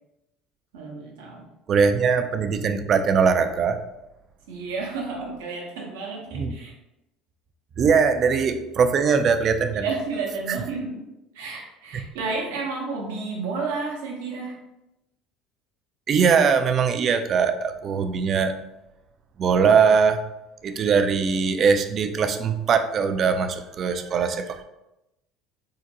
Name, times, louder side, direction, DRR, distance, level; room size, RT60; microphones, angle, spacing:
voice 1, 0.7-1.4 4.5-6.7 9.7-11.0 11.3-14.6, right 4 dB, 80° right, -1 dB, 0.7 m, -31 dB
voice 2, 1.7-3.8 6.3-6.5 7.8-9.8 16.1-18.5 19.4-20.2 20.6-24.6, right 6 dB, 45° right, 8 dB, 0.3 m, -21 dB
3.7 x 2.1 x 2.7 m, 0.91 s
hypercardioid pair, 70°, 0 cm